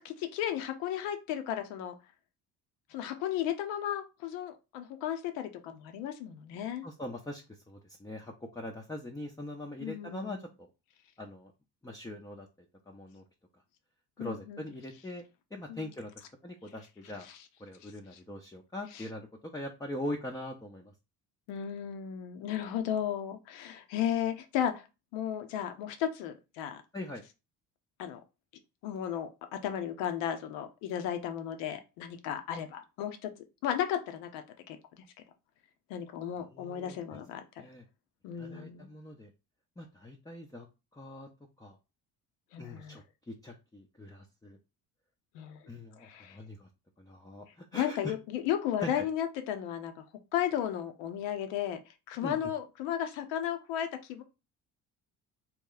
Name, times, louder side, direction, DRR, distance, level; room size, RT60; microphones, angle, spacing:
voice 1, 0.0-2.0 2.9-6.8 9.8-10.5 14.2-14.8 15.7-15.9 17.1-17.5 17.8-18.2 18.9-19.1 21.5-24.9 25.1-26.8 28.0-28.2 28.8-33.3 33.6-34.4 34.7-35.0 35.9-37.4 38.2-38.9 42.5-43.0 45.3-45.7 46.0-46.4 47.7-49.9 50.3-51.8 52.1-54.2, left 10 dB, 75° left, 7 dB, 0.8 m, -34 dB
voice 2, 6.8-7.4 7.7-10.7 11.2-11.5 11.8-12.5 12.9-13.2 14.2-15.2 15.5-16.1 16.4-17.3 17.6-19.2 19.5-20.9 26.9-27.2 36.5-37.0 37.6-37.8 38.4-39.3 39.8-40.7 40.9-41.3 41.6-41.8 42.6-44.6 45.7-46.7 47.0-47.5 47.7-48.1 48.8-49.0 52.2-52.4, left 1 dB, 10° left, 1 dB, 0.6 m, -42 dB
2.9 x 2.3 x 3.8 m, 0.28 s
hypercardioid pair, 60°, 45 cm